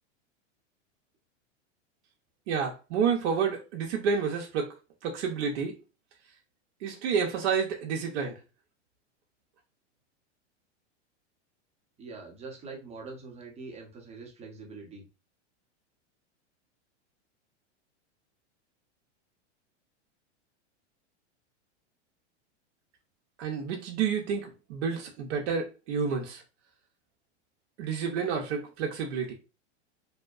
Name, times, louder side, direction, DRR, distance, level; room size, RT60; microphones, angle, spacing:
voice 1, 2.5-4.7 5.0-5.7 6.8-8.3 23.4-26.4 27.8-29.3, right 6 dB, 65° right, 0.6 m, -29 dB
voice 2, 12.0-15.0, right 4 dB, 20° right, 0.8 m, -44 dB
2.7 x 2.1 x 2.3 m
hypercardioid pair, 125°, 36 cm